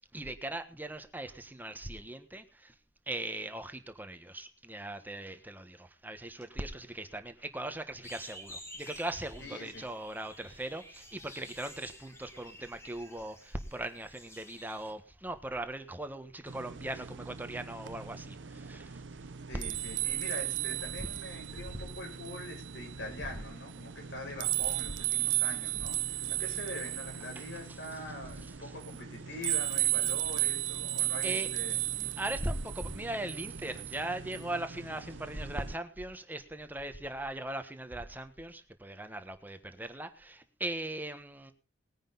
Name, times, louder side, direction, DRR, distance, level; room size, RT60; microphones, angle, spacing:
voice 1, 0.1-2.7 3.1-19.0 27.3-27.8 31.2-31.5 32.0-41.5, right 1 dB, 10° right, 7 dB, 1.3 m, -39 dB
sound 1, 8.0-14.9, left 1 dB, 15° left, 3.4 m, -51 dB
voice 2, 9.4-9.9 19.5-31.8, left 1 dB, 85° left, 2 dB, 6.7 m, -44 dB
sound 2, 16.5-35.8, right 14 dB, 85° right, 0.7 m, -35 dB
20.0 x 10.0 x 4.0 m, 0.34 s
head